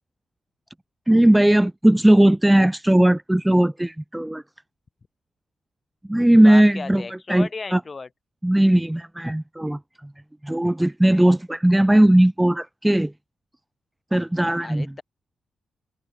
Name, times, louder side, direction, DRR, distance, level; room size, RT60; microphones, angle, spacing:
voice 1, 1.1-4.4 6.1-7.0 7.3-7.8 8.4-9.8 10.4-13.1 14.1-14.9, right 1 dB, 5° right, 0.8 m, -18 dB
voice 2, 6.4-8.1 14.6-15.0, left 4 dB, 30° left, 7.2 m, -34 dB
wide cardioid pair, 150°, 0 cm